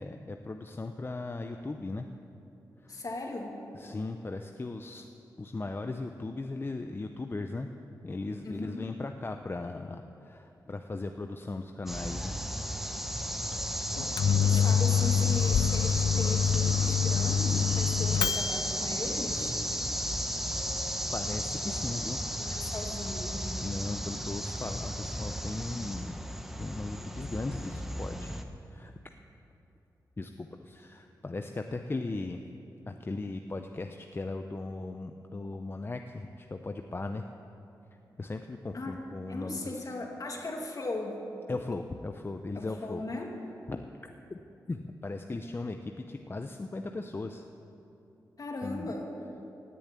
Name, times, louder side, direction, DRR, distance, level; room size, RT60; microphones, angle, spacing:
voice 1, 0.0-2.1 2.8-3.0 3.7-5.1 5.4-7.7 8.0-12.4 21.1-22.7 23.6-26.2 26.6-28.3 28.7-28.9 30.2-32.5 32.9-37.2 38.2-39.8 41.5-43.0 43.7-43.8 44.3-44.4 44.7-47.4 48.6-48.9, left 2 dB, 30° left, 5 dB, 0.6 m, -37 dB
voice 2, 2.9-3.5 8.4-8.9 14.3-19.6 19.9-20.0 22.4-23.4 38.7-39.0 39.3-41.2 42.6-43.3 48.4-49.1, left 2 dB, 50° left, 1 dB, 2.4 m, -38 dB
sound 1, 11.9-28.4, equal, 5° right, 1.1 m, -34 dB
Microwave oven, 13.9-18.7, left 8 dB, 80° left, 0.4 m, -26 dB
16.5 x 7.1 x 9.6 m, 2.9 s
cardioid pair, 65°, 8 cm